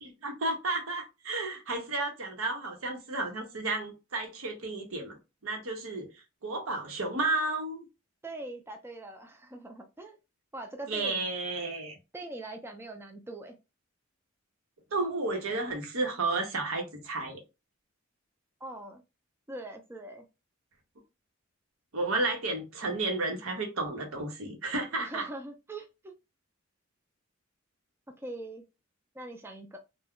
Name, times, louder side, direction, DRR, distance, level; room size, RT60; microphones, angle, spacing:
voice 1, 0.0-5.2 5.4-6.1 6.4-7.9 10.9-11.9 14.9-17.4 21.9-25.2, right 2 dB, 85° right, 0.8 m, -32 dB
voice 2, 8.2-10.2 10.5-11.3 12.1-13.6 18.6-19.0 19.5-20.3 25.0-26.1 28.2-28.6 29.1-29.8, right 2 dB, 10° right, 0.3 m, -42 dB
2.2 x 2.1 x 3.6 m
head